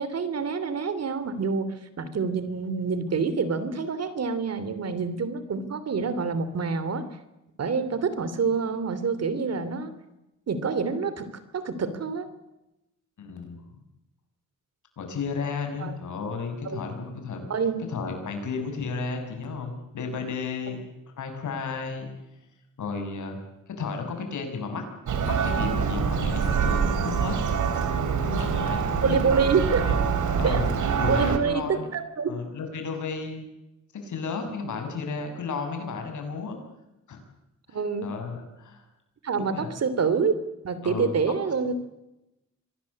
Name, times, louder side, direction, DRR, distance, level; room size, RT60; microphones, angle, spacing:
voice 1, 0.0-7.0 7.6-9.9 10.5-12.3 15.8-15.9 16.6-16.8 17.5-17.8 29.0-29.8 30.4-30.6 31.1-32.3 37.7-38.1 39.2-40.3 40.6-41.7, right 5 dB, 55° right, 13 dB, 3.0 m, -27 dB
voice 2, 13.2-13.6 15.0-17.5 17.9-20.8 21.1-22.1 22.8-23.4 23.7-24.9 25.3-27.9 28.2-29.3 29.9-30.0 30.4-30.7 31.0-31.9 32.3-33.4 33.9-36.6 37.1-37.2 37.7-38.8 39.3-39.7 40.8-41.2, left 4 dB, 75° left, 5 dB, 6.9 m, -33 dB
Church bell, 25.1-31.4, right 6 dB, 75° right, 3.4 m, -25 dB
25.5 x 18.5 x 8.6 m, 0.92 s
cardioid pair, 110°, 30 cm